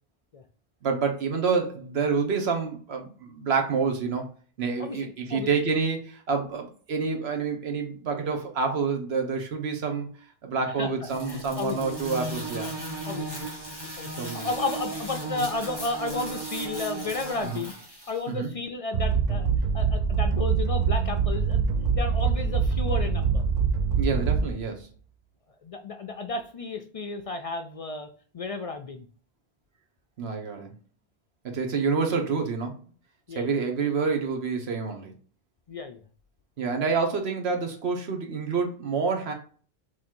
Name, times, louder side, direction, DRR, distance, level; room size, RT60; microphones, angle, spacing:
voice 1, 0.8-4.3 4.6-10.1 10.4-12.7 14.2-14.5 17.5-17.6 18.3-18.5 24.0-24.9 30.2-30.7 31.4-32.7 33.4-35.1 36.6-39.3, right 5 dB, 80° right, 4 dB, 1.2 m, -28 dB
voice 2, 4.8-5.5 10.8-10.9 11.3-11.8 13.1-13.3 13.8-14.1 14.3-17.7 18.1-19.5 19.7-21.6 21.9-23.5 25.6-28.1 28.3-29.1 33.3-33.7 35.7-36.0 36.6-36.7, left 3 dB, 55° left, 6 dB, 0.4 m, -33 dB
sound 1, 11.1-18.2, right 1 dB, 25° right, 1.2 m, -35 dB
sound 2, 18.9-24.8, right 6 dB, 50° right, 0.6 m, -24 dB
3.9 x 3.1 x 4.4 m, 0.42 s
omnidirectional pair, 1.1 m